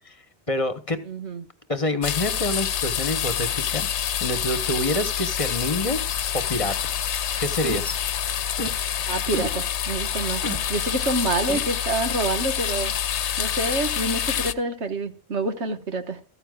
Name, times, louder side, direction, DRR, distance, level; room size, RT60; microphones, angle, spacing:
voice 1, 0.5-1.1 1.7-3.9 4.2-6.0 6.3-6.8 7.4-8.0, left 1 dB, 30° left, 1.2 m, -27 dB
voice 2, 1.1-1.4 9.1-10.4 10.7-12.9 13.4-16.2, right 2 dB, 85° right, 1.7 m, -27 dB
sound 1, 2.0-14.5, left 9 dB, 85° left, 1.0 m, -27 dB
sound 2, 7.6-8.0 8.3-8.8 9.3-9.5 9.9-10.1 10.4-10.6 11.1-11.2 11.5-11.6, equal, 15° left, 1.0 m, -30 dB
14.5 x 14.0 x 2.4 m
omnidirectional pair, 1.1 m